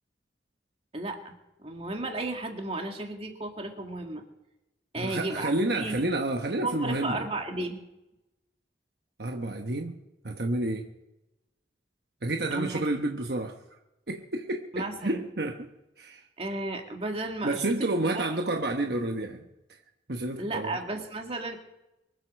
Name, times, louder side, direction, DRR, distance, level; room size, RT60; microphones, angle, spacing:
voice 1, 0.9-1.3 1.6-4.2 4.9-5.9 6.6-7.8 12.5-12.9 14.7-15.2 16.4-18.2 20.4-21.6, right 2 dB, 35° right, 3 dB, 1.9 m, -34 dB
voice 2, 5.0-7.2 9.2-10.0 10.2-10.9 12.2-13.5 14.1-15.7 16.0-16.2 17.4-19.4 20.1-20.8, right 2 dB, 60° right, 3 dB, 1.1 m, -30 dB
24.0 x 8.1 x 6.4 m, 0.94 s
head